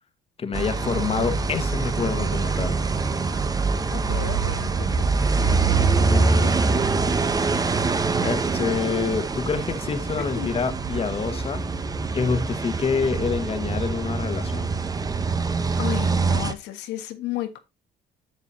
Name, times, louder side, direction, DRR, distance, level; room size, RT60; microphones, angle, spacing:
voice 1, 0.4-2.8 6.1-6.6 8.2-11.6 12.1-14.7, left 5 dB, 35° left, 1.4 m, -27 dB
sound 1, 0.5-16.5, right 4 dB, 20° right, 0.9 m, -24 dB
voice 2, 3.9-5.1 6.1-6.5 10.3-10.5 15.8-17.6, left 13 dB, 85° left, 1.6 m, -33 dB
11.0 x 7.1 x 2.8 m
cardioid pair, 110°, 17 cm